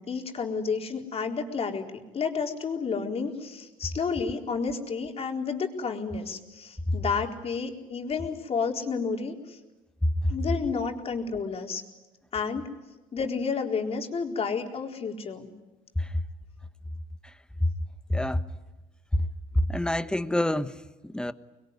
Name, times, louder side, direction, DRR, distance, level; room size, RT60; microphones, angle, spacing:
voice 1, 0.0-1.9 2.1-9.6 10.3-11.8 12.3-12.7 13.1-15.5, left 5 dB, 40° left, 2 dB, 4.1 m, -31 dB
voice 2, 18.1-18.4 19.7-20.7 21.0-21.3, left 1 dB, 5° left, 12 dB, 1.2 m, -26 dB
25.5 x 22.0 x 9.8 m, 1.1 s
cardioid pair, 95°, 15 cm